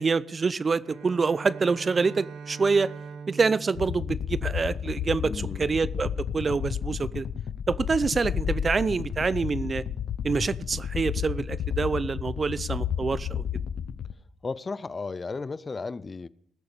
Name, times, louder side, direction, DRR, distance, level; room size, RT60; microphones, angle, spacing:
voice 1, 0.0-2.9 3.3-7.3 7.7-9.8 10.2-13.4, right 4 dB, 35° right, 0.5 m, -26 dB
Bowed string instrument, 0.8-5.1, right 5 dB, 75° right, 1.5 m, -42 dB
sound 1, 3.7-14.1, left 8 dB, 65° left, 0.7 m, -32 dB
voice 2, 5.2-5.7 14.4-16.3, left 4 dB, 30° left, 0.5 m, -34 dB
19.0 x 7.0 x 6.6 m
cardioid pair, 90°, 0 cm